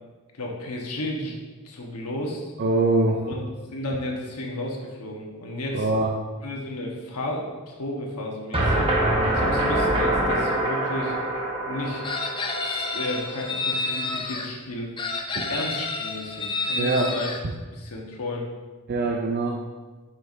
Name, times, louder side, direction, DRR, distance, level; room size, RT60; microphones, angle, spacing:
voice 1, 0.3-1.3 1.6-2.5 3.2-3.4 3.7-5.9 6.4-8.9 9.2-11.1 11.7-12.1 12.6-14.9 15.5-17.3 17.7-18.5, left 1 dB, 90° left, -1 dB, 1.2 m, -33 dB
voice 2, 2.6-3.3 5.7-6.1 15.3-15.5 16.8-17.1 18.9-19.6, right 2 dB, 45° right, 2 dB, 0.5 m, -23 dB
sound 1, 8.5-13.5, right 1 dB, 25° right, 1.0 m, -25 dB
Chicken rooster, 12.0-14.5 15.0-17.4, left 3 dB, 20° left, 0.4 m, -29 dB
7.6 x 5.6 x 2.7 m, 1.3 s
head